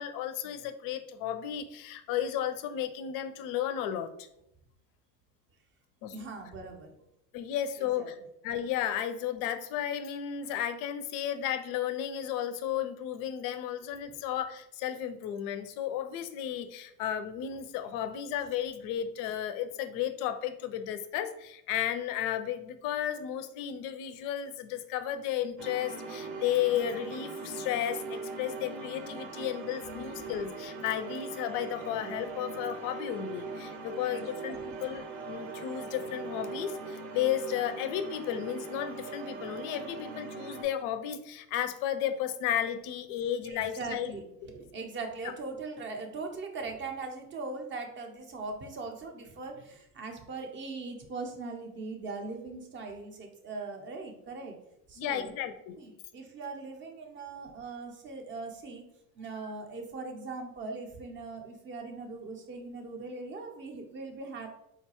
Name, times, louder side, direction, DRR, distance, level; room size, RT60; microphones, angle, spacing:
voice 1, 0.0-4.1 6.0-6.2 7.3-8.2 8.4-44.1 55.0-55.8 59.4-59.5, left 10 dB, 50° left, 11 dB, 0.4 m, -33 dB
voice 2, 6.1-7.0 7.8-8.1 34.1-34.3 43.4-44.2 44.5-54.6 54.9-55.4 55.8-58.9 59.2-64.5, right 3 dB, 25° right, 3 dB, 0.5 m, -40 dB
sound 1, 25.6-40.6, right 3 dB, 60° right, 0.8 m, -40 dB
3.8 x 2.2 x 2.8 m, 0.80 s
hypercardioid pair, 95°, 45 cm